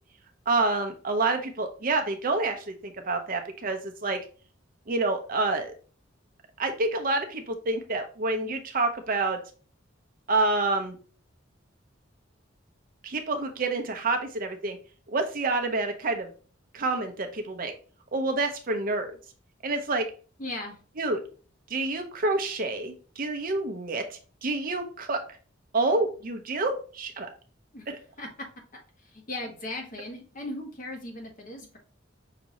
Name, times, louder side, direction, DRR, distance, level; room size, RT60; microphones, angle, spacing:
voice 1, 0.5-4.2 4.9-5.7 6.6-9.4 10.3-11.0 13.0-14.8 15.1-16.3 16.7-17.7 18.1-19.2 19.6-20.1 21.0-21.2 21.7-25.2 25.7-27.3 27.9-28.0, right 3 dB, 45° right, 5 dB, 0.7 m, -28 dB
voice 2, 20.4-20.8 27.7-27.9 28.2-28.5 28.7-31.8, left 2 dB, 45° left, 1 dB, 1.2 m, -38 dB
5.8 x 2.6 x 2.9 m, 0.39 s
head